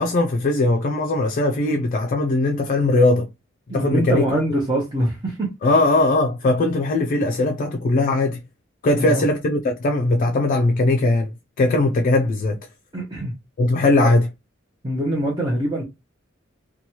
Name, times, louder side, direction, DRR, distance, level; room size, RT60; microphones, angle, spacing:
voice 1, 0.0-3.3 3.7-4.2 5.6-8.4 8.8-11.3 11.6-12.6 13.6-14.3, left 2 dB, 45° left, 0.4 m, -19 dB
voice 2, 3.7-5.5 9.0-9.2 12.9-13.3 14.0-14.1 14.8-15.8, right 1 dB, 20° right, 0.7 m, -23 dB
2.9 x 2.3 x 2.8 m
head